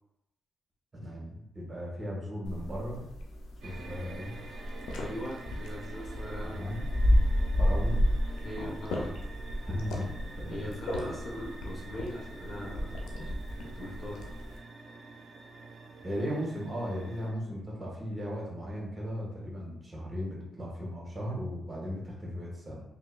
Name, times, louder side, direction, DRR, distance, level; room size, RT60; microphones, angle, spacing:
voice 1, 0.9-3.0 3.6-4.3 6.4-6.8 7.6-8.0 9.6-10.1 10.4-10.7 11.0-11.1 16.0-22.8, equal, 25° right, -5 dB, 1.4 m, -36 dB
sound 1, 2.4-14.6, equal, 90° left, 0.5 m, -32 dB
sound 2, 3.6-17.3, right 3 dB, 75° right, 0.5 m, -48 dB
voice 2, 4.9-6.6 8.4-9.2 10.5-13.0 13.8-14.3, equal, 50° left, -4 dB, 1.1 m, -40 dB
3.0 x 2.9 x 2.4 m, 0.81 s
cardioid pair, 65°, 0 cm